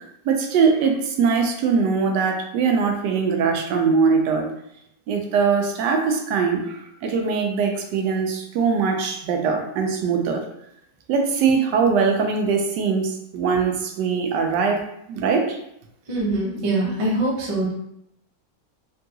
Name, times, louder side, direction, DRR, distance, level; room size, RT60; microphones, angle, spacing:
voice 1, 0.3-4.5 5.1-10.4 11.1-15.6, right 5 dB, 80° right, 3 dB, 1.2 m, -21 dB
voice 2, 16.1-17.7, right 2 dB, 60° right, -4 dB, 0.3 m, -23 dB
3.5 x 2.3 x 2.7 m, 0.76 s
omnidirectional pair, 1.9 m